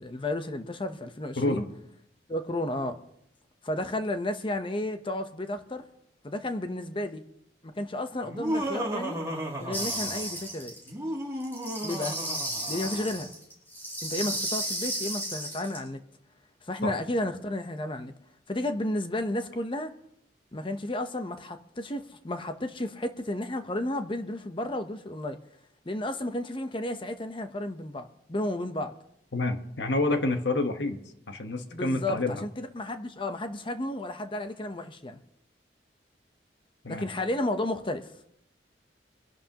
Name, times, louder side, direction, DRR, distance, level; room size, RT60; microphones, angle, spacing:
voice 1, 0.0-1.6 2.3-3.0 3.6-5.8 6.2-7.2 7.6-9.2 9.6-10.8 11.8-12.1 12.7-13.3 14.0-16.0 16.7-18.1 18.5-19.9 20.5-25.4 25.9-28.9 31.7-35.2 36.9-38.3, left 1 dB, 30° left, 0.9 m, -32 dB
Laughter, 8.2-10.4 10.9-13.2, right 1 dB, 15° right, 2.7 m, -34 dB
sound 1, 9.7-10.9 11.4-15.8, right 1 dB, 10° left, 4.1 m, -34 dB
voice 2, 29.3-32.4 36.8-37.1, left 2 dB, 80° left, 1.3 m, -28 dB
24.0 x 11.0 x 3.0 m
head